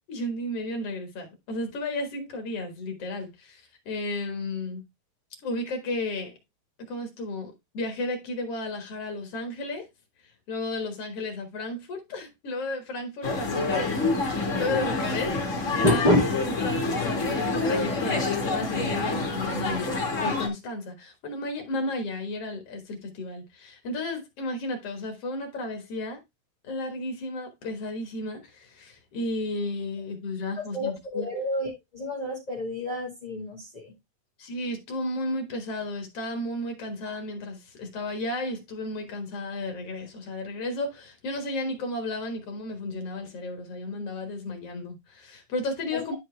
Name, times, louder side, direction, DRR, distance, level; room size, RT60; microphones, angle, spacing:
voice 1, 0.0-4.8 5.4-6.3 6.9-9.9 10.2-14.0 14.3-15.4 15.7-16.1 16.6-26.2 26.6-31.3 34.4-46.1, left 2 dB, 55° left, 1.8 m, -33 dB
sound 1, 13.2-20.5, left 3 dB, 35° left, 1.2 m, -27 dB
voice 2, 15.8-16.2 30.5-33.9 45.9-46.0, left 1 dB, 15° left, 1.5 m, -27 dB
11.0 x 4.5 x 3.2 m
omnidirectional pair, 4.3 m